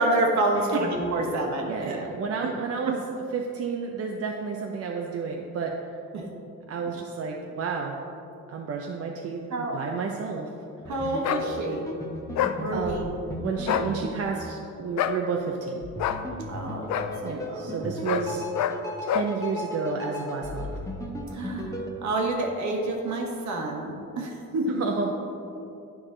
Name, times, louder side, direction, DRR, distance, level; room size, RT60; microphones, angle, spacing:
voice 1, 0.0-2.0 2.4-2.5 2.9-3.0 6.1-6.3 9.5-9.8 10.9-11.9 12.6-13.1 16.5-17.9 21.3-21.7 22.0-24.8, right 2 dB, 70° right, 0 dB, 1.4 m, -28 dB
voice 2, 1.7-3.0 3.3-5.7 6.7-7.9 8.5-10.5 12.7-13.1 13.4-15.9 17.2-18.4 19.0-20.7 24.8-25.1, right 5 dB, 50° right, 1 dB, 0.6 m, -31 dB
sound 1, 10.8-15.1 15.8-21.9, left 1 dB, 10° left, 1.1 m, -36 dB
sound 2, 11.2-11.5 12.4-12.6 13.6-13.9 15.0-15.2 16.0-16.2 16.9-17.1 18.0-18.3 18.5-18.8 19.1-19.3, left 10 dB, 70° left, 0.5 m, -26 dB
9.8 x 4.7 x 3.8 m, 2.8 s
cardioid pair, 90°, 30 cm